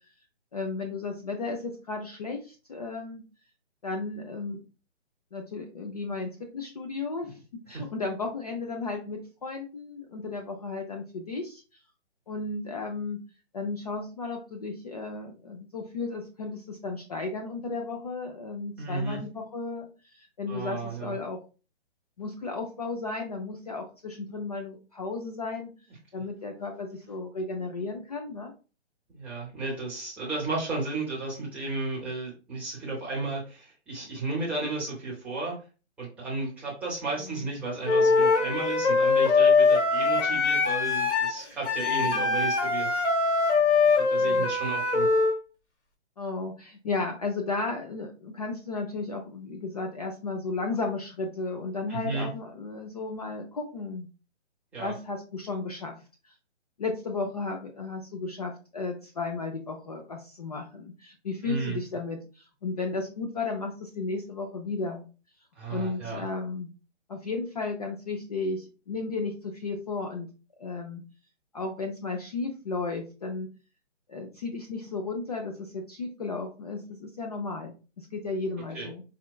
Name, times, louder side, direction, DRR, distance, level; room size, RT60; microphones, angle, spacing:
voice 1, 0.5-3.2 3.8-4.6 5.3-11.8 12.3-13.2 13.5-21.4 22.2-25.7 26.1-28.5 37.2-37.5 42.0-42.4 44.2-44.7 46.2-54.1 54.8-55.9 56.2-56.3 56.8-65.1 65.7-66.7 67.1-70.3 70.6-71.0 71.5-73.5 74.1-79.0, left 3 dB, 35° left, 3 dB, 0.4 m, -34 dB
voice 2, 18.8-19.2 20.5-21.2 29.1-35.6 36.0-42.9 44.0-45.1 51.9-52.3 54.7-54.9 61.4-61.8 65.5-66.2 78.7-78.9, right 3 dB, 5° right, -6 dB, 0.7 m, -33 dB
Wind instrument woodwind instrument, 37.9-45.3, left 4 dB, 75° left, 1.6 m, -23 dB
4.9 x 2.2 x 2.2 m, 0.34 s
hypercardioid pair, 150°, 35 cm